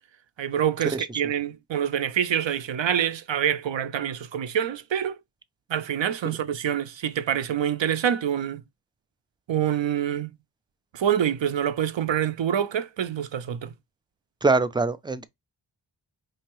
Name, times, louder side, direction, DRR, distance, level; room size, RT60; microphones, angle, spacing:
voice 1, 0.4-5.2 5.7-8.6 9.5-10.3 10.9-13.7, right 9 dB, 65° right, 0.7 m, -26 dB
voice 2, 14.4-15.3, right 3 dB, 10° right, 0.3 m, -23 dB
4.4 x 2.8 x 3.0 m
cardioid pair, 55°, 47 cm